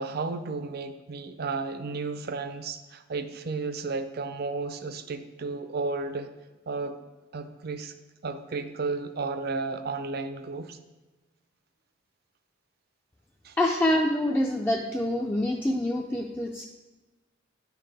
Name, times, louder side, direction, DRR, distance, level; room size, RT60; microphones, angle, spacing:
voice 1, 0.0-6.3 6.7-7.0 7.3-7.9 8.2-10.8 13.4-13.6, right 3 dB, 50° right, 10 dB, 0.5 m, -33 dB
voice 2, 13.6-16.6, left 1 dB, 10° left, 1 dB, 0.3 m, -26 dB
9.6 x 5.8 x 3.4 m, 1.2 s
head